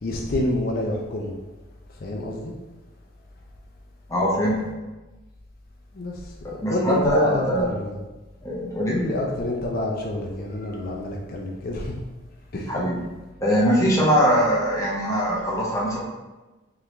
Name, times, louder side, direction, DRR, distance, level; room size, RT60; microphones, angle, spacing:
voice 1, 0.0-1.4 2.0-2.5 5.9-8.0 8.9-12.0 12.5-12.8, left 1 dB, 45° left, -1 dB, 0.4 m, -28 dB
voice 2, 4.1-4.7 6.6-7.7 8.4-9.0 12.7-13.0 13.4-16.1, equal, 15° left, -5 dB, 0.7 m, -22 dB
3.7 x 2.9 x 3.2 m, 1.1 s
head